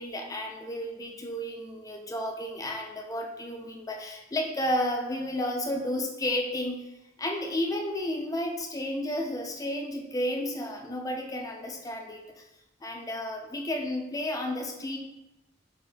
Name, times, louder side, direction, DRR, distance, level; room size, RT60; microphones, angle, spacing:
voice 1, 0.0-6.8 7.2-12.5 12.8-15.0, left 1 dB, 20° left, 1 dB, 0.4 m, -32 dB
6.1 x 2.5 x 2.3 m, 0.95 s
head